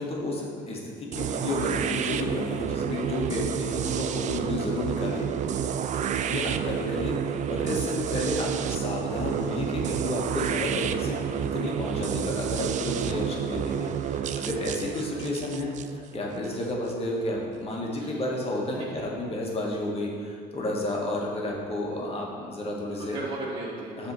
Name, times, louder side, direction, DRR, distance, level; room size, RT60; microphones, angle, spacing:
voice 1, 0.0-5.3 6.3-15.7 16.1-23.2 24.0-24.1, left 1 dB, 35° left, -2 dB, 1.6 m, -31 dB
sound 1, 1.1-16.9, right 8 dB, 45° right, 0.4 m, -30 dB
voice 2, 5.6-6.4 18.0-18.3 18.9-19.1 23.0-24.1, right 2 dB, 30° right, -6 dB, 2.0 m, -37 dB
7.8 x 3.6 x 6.2 m, 2.1 s
cardioid pair, 110°, 17 cm